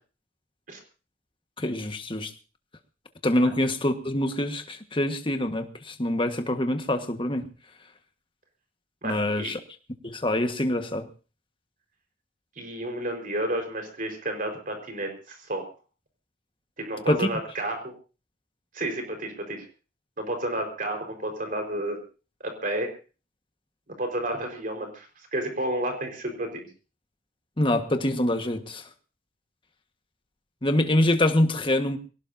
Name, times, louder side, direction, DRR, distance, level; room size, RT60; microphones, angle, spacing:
voice 1, 1.6-2.3 3.2-7.4 9.0-9.6 10.0-11.1 17.1-17.3 27.6-28.8 30.6-32.0, left 1 dB, 30° left, 7 dB, 1.5 m, -25 dB
voice 2, 9.0-9.5 12.6-15.7 16.8-17.9 18.7-19.7 20.2-22.0 22.4-22.9 23.9-26.7, right 1 dB, 50° right, 4 dB, 4.7 m, -31 dB
23.0 x 18.0 x 2.7 m, 0.35 s
head